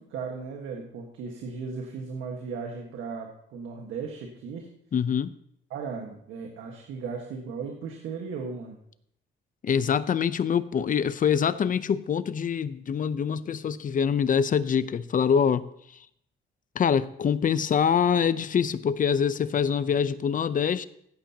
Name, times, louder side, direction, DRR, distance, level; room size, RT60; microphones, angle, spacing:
voice 1, 0.0-4.7 5.7-8.8, right 5 dB, 90° right, 1.5 m, -36 dB
voice 2, 4.9-5.3 9.6-15.7 16.7-20.8, left 7 dB, 45° left, 0.7 m, -25 dB
16.0 x 9.1 x 2.9 m
cardioid pair, 90°, 20 cm